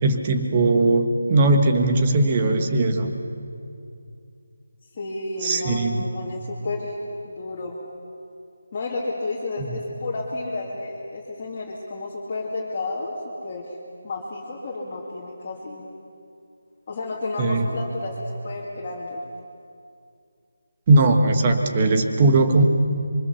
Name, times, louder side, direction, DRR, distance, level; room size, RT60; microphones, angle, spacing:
voice 1, 0.0-3.1 5.4-6.0 17.4-17.7 20.9-22.6, right 2 dB, 20° right, 5 dB, 1.4 m, -19 dB
voice 2, 4.9-6.9 7.2-7.8 8.7-13.1 13.4-13.8 14.0-15.9 16.9-19.2, left 2 dB, 25° left, -5 dB, 2.6 m, -31 dB
27.0 x 24.5 x 7.1 m, 2.4 s
figure-of-eight pair, 175°, 0 cm